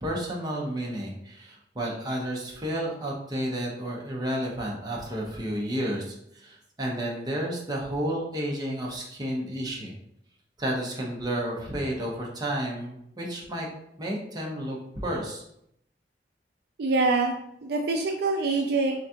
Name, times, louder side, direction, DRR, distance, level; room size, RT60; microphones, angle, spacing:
voice 1, 0.0-9.9 10.6-13.7 14.0-15.4, right 1 dB, 25° right, -2 dB, 0.8 m, -31 dB
voice 2, 16.8-17.3 17.6-19.0, right 3 dB, 60° right, 3 dB, 0.4 m, -25 dB
3.9 x 3.5 x 2.8 m, 0.74 s
head